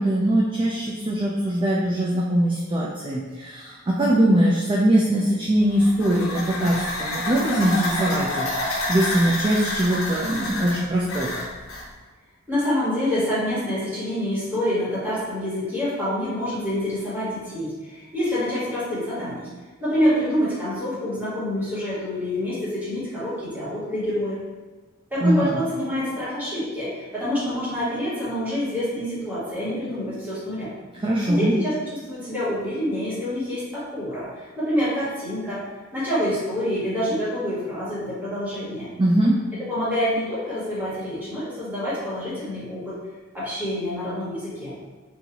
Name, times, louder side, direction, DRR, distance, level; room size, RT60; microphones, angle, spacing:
voice 1, 0.0-11.3 25.2-25.6 31.0-31.5 39.0-39.4, right 1 dB, 25° right, -4 dB, 0.4 m, -22 dB
sound 1, 5.6-11.9, left 2 dB, 85° left, 0.7 m, -29 dB
voice 2, 12.5-19.5 19.8-24.4 25.1-30.7 31.2-31.7 32.1-35.7 35.9-38.9 39.7-43.0 43.3-44.7, equal, 10° right, -11 dB, 1.5 m, -27 dB
3.9 x 2.6 x 2.9 m, 1.3 s
head